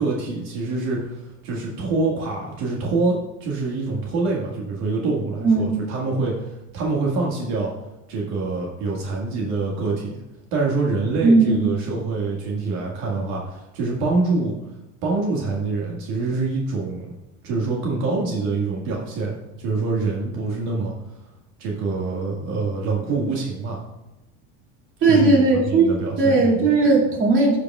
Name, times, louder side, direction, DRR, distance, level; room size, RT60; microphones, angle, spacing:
voice 1, 0.0-7.7 8.1-10.2 10.5-14.6 15.0-17.1 17.4-20.9 21.6-23.8 25.1-26.7, right 3 dB, 75° right, -3 dB, 2.0 m, -25 dB
voice 2, 5.4-5.8 11.2-11.7 25.0-25.9 26.2-27.6, right 3 dB, 40° right, -3 dB, 2.5 m, -17 dB
14.5 x 5.0 x 2.4 m, 0.98 s
supercardioid pair, 140°, 32 cm